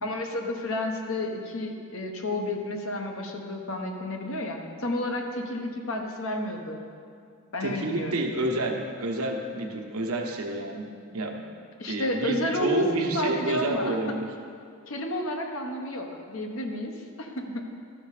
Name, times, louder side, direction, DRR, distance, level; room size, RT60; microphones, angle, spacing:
voice 1, 0.0-6.8 7.5-8.1 11.8-14.0 14.9-16.9 17.2-17.6, left 1 dB, 65° left, 2 dB, 1.1 m, -31 dB
voice 2, 7.6-10.9 11.1-11.4 11.9-14.3, right 1 dB, 75° right, 2 dB, 1.1 m, -29 dB
12.5 x 6.7 x 4.9 m, 2.3 s
head